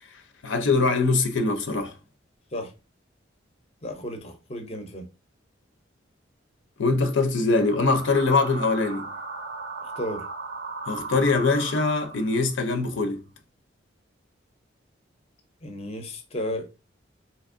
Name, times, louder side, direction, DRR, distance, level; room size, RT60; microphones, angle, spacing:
voice 1, 0.1-1.9 6.8-9.1 10.9-13.2, left 3 dB, 80° left, 0.5 m, -23 dB
voice 2, 3.8-5.1 10.0-10.2 15.6-16.7, left 1 dB, 35° left, 0.5 m, -33 dB
sound 1, 7.5-12.6, right 3 dB, 65° right, 0.6 m, -37 dB
3.5 x 2.8 x 2.5 m
head